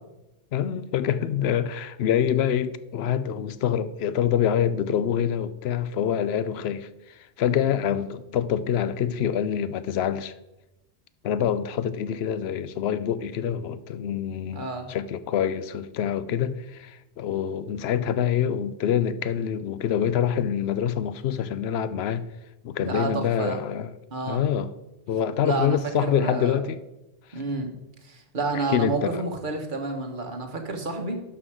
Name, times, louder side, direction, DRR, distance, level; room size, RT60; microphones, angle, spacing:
voice 1, 0.5-6.9 7.4-10.3 11.2-22.3 22.6-23.9 24.3-24.7 25.1-26.8 28.5-29.2, left 9 dB, 70° left, 0.8 m, -26 dB
voice 2, 14.5-14.9 22.8-23.6 24.1-24.4 25.4-26.6 27.3-27.7 28.0-31.2, right 3 dB, 45° right, 1.4 m, -30 dB
11.5 x 6.1 x 4.8 m
omnidirectional pair, 1.2 m